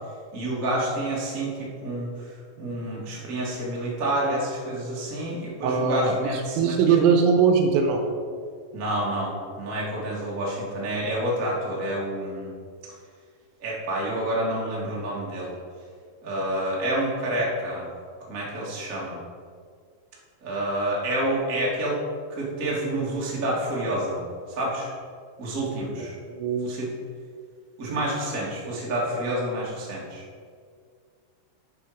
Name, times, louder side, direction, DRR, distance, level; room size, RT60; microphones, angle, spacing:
voice 1, 0.3-2.1 2.6-7.1 8.7-12.5 13.6-15.5 16.2-17.9 18.3-19.2 20.4-22.0 22.3-24.3 24.5-24.9 25.4-26.1 26.6-26.9 27.8-30.2, right 1 dB, 45° right, -5 dB, 1.0 m, -28 dB
voice 2, 5.6-8.1 26.0-26.7, right 6 dB, 85° right, 4 dB, 3.0 m, -22 dB
10.0 x 6.6 x 5.0 m, 2.1 s
omnidirectional pair, 5.6 m